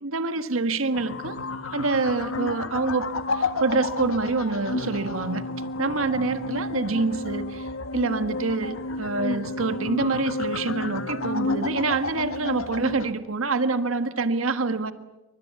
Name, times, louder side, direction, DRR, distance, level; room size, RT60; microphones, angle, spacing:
voice 1, 0.0-1.4 1.7-5.4 5.8-7.7 7.9-14.9, right 3 dB, 90° right, 10 dB, 1.5 m, -26 dB
sound 1, 0.9-13.1, left 2 dB, 90° left, 1.7 m, -31 dB
28.5 x 24.5 x 8.4 m, 1.0 s
head